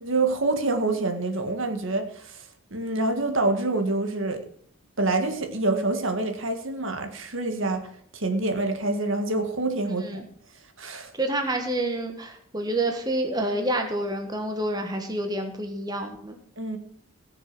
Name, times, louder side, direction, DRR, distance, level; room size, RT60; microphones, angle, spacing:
voice 1, 0.0-4.5 5.0-10.2 10.8-11.1 16.6-16.8, right 2 dB, 65° right, 6 dB, 1.8 m, -26 dB
voice 2, 9.9-10.2 11.2-16.4, right 1 dB, 20° right, 4 dB, 1.5 m, -28 dB
18.0 x 6.8 x 6.1 m, 0.63 s
head